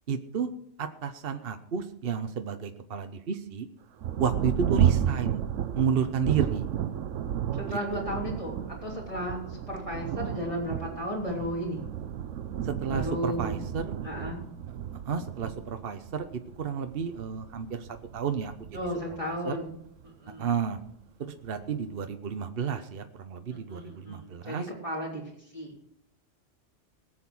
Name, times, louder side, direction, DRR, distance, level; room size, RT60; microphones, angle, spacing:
voice 1, 0.1-0.5 0.8-3.7 4.2-5.4 5.7-6.7 7.7-8.0 12.6-14.0 15.0-18.5 19.2-19.5 20.4-20.8 21.4-24.7, right 6 dB, 55° right, 7 dB, 1.0 m, -31 dB
Thunder, 4.0-20.1 20.8-20.9 21.5-21.9, right 9 dB, 90° right, 1.1 m, -32 dB
voice 2, 7.6-11.8 12.9-13.6 14.0-14.4 18.7-19.7 20.0-20.5 23.5-25.7, equal, 25° left, -4 dB, 3.3 m, -34 dB
19.0 x 7.8 x 6.1 m, 0.69 s
omnidirectional pair, 1.2 m